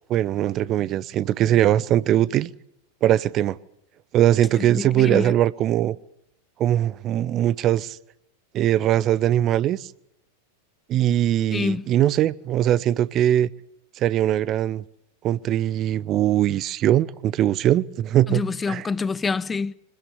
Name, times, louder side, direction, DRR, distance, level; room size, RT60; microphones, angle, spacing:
voice 1, 0.1-2.5 3.0-3.6 4.1-6.0 6.6-8.0 8.5-9.9 10.9-13.5 14.0-14.8 15.2-18.4 18.7-18.9, right 12 dB, 35° right, 0.9 m, -21 dB
voice 2, 4.7-5.3 11.5-11.9 18.3-19.7, left 4 dB, 15° left, 0.9 m, -26 dB
25.0 x 20.5 x 7.1 m
figure-of-eight pair, 90°, 0 cm